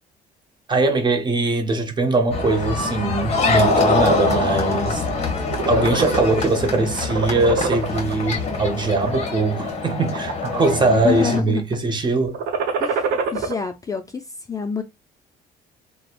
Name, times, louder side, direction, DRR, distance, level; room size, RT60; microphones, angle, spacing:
voice 1, 0.7-5.0 5.7-12.4, right 3 dB, 25° right, 0.6 m, -21 dB
sound 1, 2.3-11.4, left 4 dB, 40° left, 0.8 m, -24 dB
sound 2, 3.4-4.4 4.9-5.1 5.4-6.7 7.0-8.1 8.8-9.2 9.8-10.6 10.9-11.4 12.3-13.5, right 5 dB, 75° right, 0.7 m, -25 dB
voice 2, 10.9-11.8 12.8-14.8, left 6 dB, 20° left, 0.3 m, -27 dB
3.1 x 2.0 x 2.4 m
cardioid pair, 110°, 17 cm